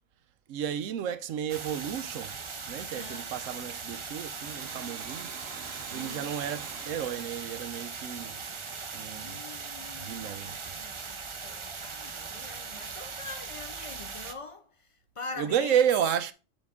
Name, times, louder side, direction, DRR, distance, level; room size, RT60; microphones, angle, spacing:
voice 1, 0.5-2.4 2.7-5.3 5.9-8.4 8.9-9.4 10.0-10.6 15.4-16.3, right 9 dB, 80° right, 1.0 m, -31 dB
sound 1, 1.5-14.3, right 5 dB, 35° right, 0.5 m, -40 dB
voice 2, 2.9-3.3 5.9-6.3 9.1-14.9 15.2-15.9, left 3 dB, 35° left, 0.5 m, -44 dB
Domestic sounds home sounds, 4.2-8.7, right 7 dB, 55° right, 1.0 m, -46 dB
7.3 x 5.1 x 3.5 m
omnidirectional pair, 1.3 m